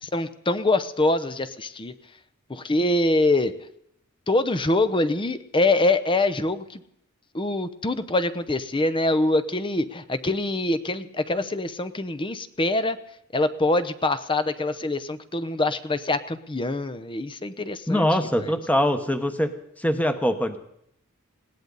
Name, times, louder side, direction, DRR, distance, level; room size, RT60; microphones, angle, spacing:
voice 1, 0.0-1.9 2.5-3.5 4.3-6.8 7.3-13.0 13.3-18.1 18.4-18.5, left 2 dB, 25° left, 12 dB, 0.8 m, -24 dB
voice 2, 17.9-19.5 19.8-20.6, equal, 5° left, 8 dB, 1.2 m, -23 dB
20.5 x 17.0 x 4.0 m, 0.73 s
head